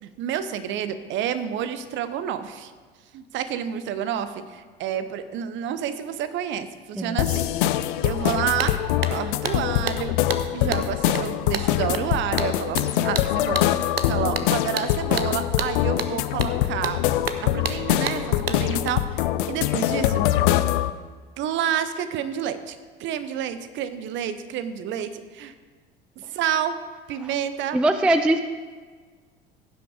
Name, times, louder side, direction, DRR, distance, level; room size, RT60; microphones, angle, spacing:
voice 1, 0.0-2.7 3.1-7.5 8.0-8.8 9.1-10.1 10.5-17.0 17.5-20.2 21.4-25.5 26.3-26.7 27.1-27.8, right 9 dB, 40° right, 11 dB, 0.8 m, -29 dB
sound 1, 7.2-20.9, left 13 dB, 60° left, 0.5 m, -24 dB
sound 2, 8.2-8.3 8.6-18.9, right 5 dB, 85° right, 0.6 m, -32 dB
voice 2, 27.7-28.4, right 1 dB, 5° right, 10 dB, 0.3 m, -21 dB
15.5 x 5.9 x 4.9 m, 1.5 s
figure-of-eight pair, 70°, 29 cm